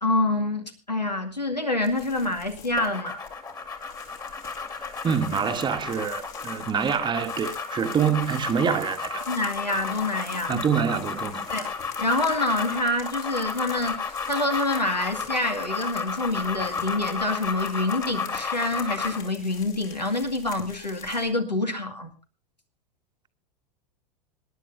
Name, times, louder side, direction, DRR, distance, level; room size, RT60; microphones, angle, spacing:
voice 1, 0.0-3.2 8.7-8.8 9.3-10.7 11.5-22.1, left 2 dB, 90° left, 2.2 m, -27 dB
sound 1, 1.8-21.3, left 8 dB, 50° left, 3.3 m, -46 dB
sound 2, 2.8-19.3, left 5 dB, 20° left, 2.0 m, -33 dB
voice 2, 5.0-9.3 10.5-11.5, right 7 dB, 20° right, 1.2 m, -26 dB
26.0 x 10.5 x 2.7 m
figure-of-eight pair, 85°, 21 cm